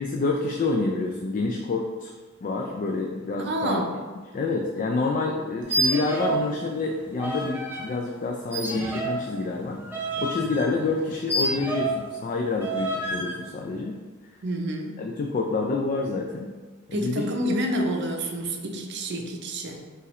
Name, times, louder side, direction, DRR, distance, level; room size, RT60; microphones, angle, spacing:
voice 1, 0.0-2.1 2.4-3.8 4.3-14.0 15.0-16.5 16.9-17.3, left 3 dB, 40° left, 1 dB, 0.3 m, -28 dB
voice 2, 3.4-3.9 14.4-15.0 16.9-19.8, right 1 dB, 55° right, 3 dB, 0.6 m, -28 dB
sound 1, 5.6-6.5 6.8-7.8 8.5-12.1 12.6-13.3, right 2 dB, 10° right, 0.6 m, -29 dB
5.5 x 2.5 x 3.1 m, 1.4 s
head